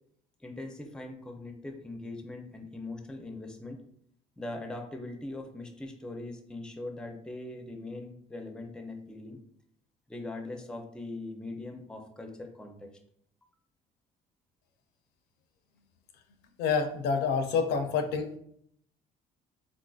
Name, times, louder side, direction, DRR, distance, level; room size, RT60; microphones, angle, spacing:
voice 1, 0.4-3.8 4.4-9.4 10.1-12.9, left 2 dB, 5° left, 4 dB, 0.4 m, -41 dB
voice 2, 16.6-18.4, left 5 dB, 75° left, 7 dB, 0.5 m, -28 dB
3.7 x 2.4 x 2.3 m, 0.68 s
cardioid pair, 110°, 17 cm